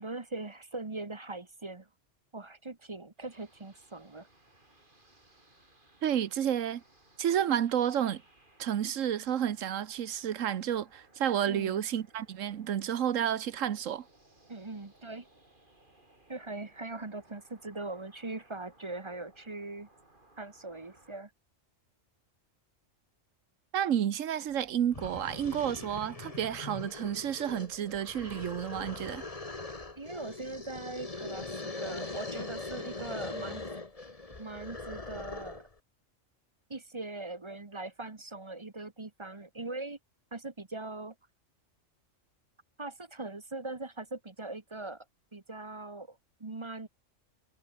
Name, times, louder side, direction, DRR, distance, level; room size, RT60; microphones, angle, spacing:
voice 1, 0.0-1.9 2.3-4.3 11.5-11.8 14.5-15.3 16.3-19.9 20.4-21.3 30.0-33.6 34.4-35.6 36.7-40.0 40.3-41.1 42.8-45.0 45.3-46.9, right 2 dB, 25° right, 1.1 m, -41 dB
sound 1, 3.2-21.2, right 2 dB, 40° right, 4.7 m, -63 dB
voice 2, 6.0-6.8 7.2-8.2 8.6-14.0 23.7-29.2, right 9 dB, 85° right, 1.3 m, -31 dB
sound 2, 24.5-24.6 24.9-35.7, left 3 dB, 30° left, 1.9 m, -41 dB
omnidirectional pair, 1.3 m